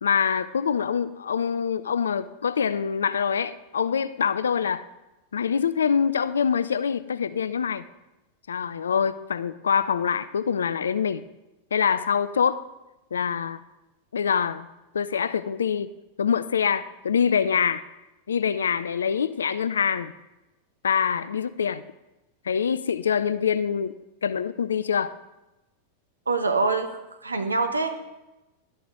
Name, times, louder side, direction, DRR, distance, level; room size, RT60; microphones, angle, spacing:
voice 1, 0.0-4.9 5.3-7.8 8.5-11.2 11.7-12.6 13.1-13.6 14.1-14.7 14.9-15.9 16.2-17.8 18.3-20.1 20.8-21.8 22.5-23.9 24.2-25.1, left 7 dB, 70° left, 14 dB, 0.3 m, -25 dB
voice 2, 26.3-26.9 27.2-28.0, right 3 dB, 80° right, 7 dB, 0.8 m, -24 dB
11.5 x 5.4 x 3.5 m, 0.99 s
figure-of-eight pair, 90°, 0 cm